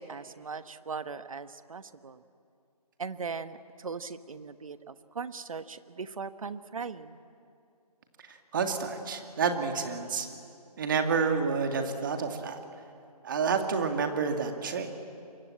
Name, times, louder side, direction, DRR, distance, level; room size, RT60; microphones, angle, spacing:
voice 1, 0.0-2.2 3.0-7.2, right 5 dB, 55° right, 12 dB, 1.2 m, -39 dB
voice 2, 8.3-10.3 10.8-12.6 13.2-15.0, right 5 dB, 30° right, 5 dB, 2.1 m, -29 dB
27.5 x 23.5 x 8.8 m, 2.5 s
figure-of-eight pair, 160°, 21 cm